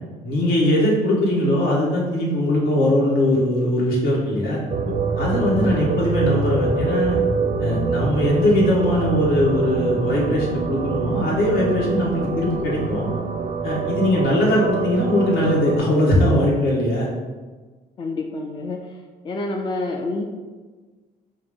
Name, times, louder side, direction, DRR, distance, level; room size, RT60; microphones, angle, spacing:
voice 1, 0.2-4.6 5.1-7.2 7.6-13.1 13.6-17.1, left 1 dB, 65° left, -4 dB, 1.3 m, -20 dB
sound 1, 4.7-15.8, right 4 dB, 35° right, 0.4 m, -25 dB
voice 2, 4.9-5.7 18.0-18.8 19.2-20.2, left 2 dB, 30° left, 2 dB, 0.3 m, -29 dB
4.7 x 2.1 x 3.6 m, 1.3 s
cardioid pair, 110°, 17 cm